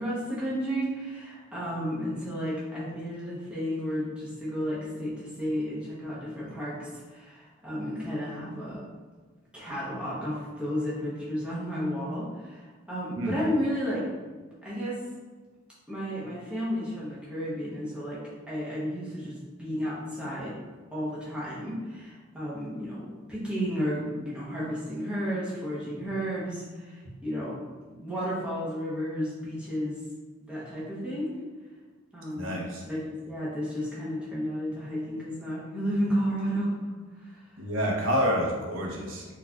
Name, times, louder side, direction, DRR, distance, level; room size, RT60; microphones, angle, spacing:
voice 1, 0.0-8.8 9.5-14.1 14.6-15.0 15.9-18.2 18.5-20.6 20.9-27.6 27.9-30.0 30.5-31.4 32.1-36.7 37.2-37.4, equal, 5° right, -8 dB, 0.7 m, -32 dB
voice 2, 32.4-32.8 37.6-39.3, equal, 60° right, -2 dB, 0.6 m, -28 dB
4.1 x 2.4 x 2.2 m, 1.4 s
head